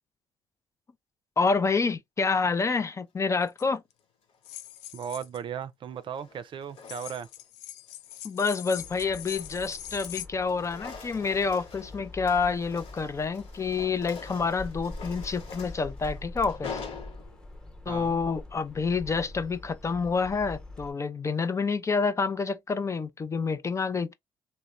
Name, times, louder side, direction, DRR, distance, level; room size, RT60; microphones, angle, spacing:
voice 1, 1.4-3.8 8.2-16.8 17.9-24.1, left 4 dB, 30° left, 0.5 m, -28 dB
sound 1, 3.5-3.6 4.4-5.4 6.8-10.3, left 12 dB, 90° left, 0.4 m, -42 dB
sound 2, 4.3-4.8 5.9-7.5 7.9-8.2 8.6-10.1 10.3-17.7, left 5 dB, 60° left, 1.1 m, -45 dB
voice 2, 4.9-7.3 17.9-18.2, right 8 dB, 50° right, 0.5 m, -36 dB
sound 3, 8.8-20.9, left 2 dB, 5° left, 1.0 m, -44 dB
3.1 x 2.1 x 2.5 m
supercardioid pair, 75°, 11 cm